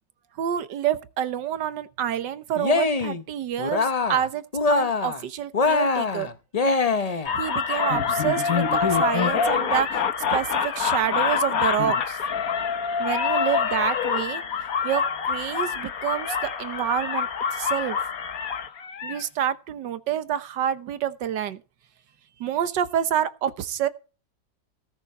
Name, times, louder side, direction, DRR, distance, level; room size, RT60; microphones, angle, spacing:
voice 1, 0.4-4.4 4.7-6.3 7.3-10.0 10.3-12.2 13.0-14.4 14.8-18.0 19.0-21.6 22.4-23.9, right 10 dB, 70° right, 1.6 m, -28 dB
Cheering, 2.5-3.2 3.6-4.3 4.5-5.2 5.5-7.3, left 3 dB, 75° left, 0.3 m, -23 dB
sound 1, 7.3-19.2, left 6 dB, 55° left, 1.5 m, -26 dB
17.5 x 6.8 x 4.3 m
omnidirectional pair, 2.0 m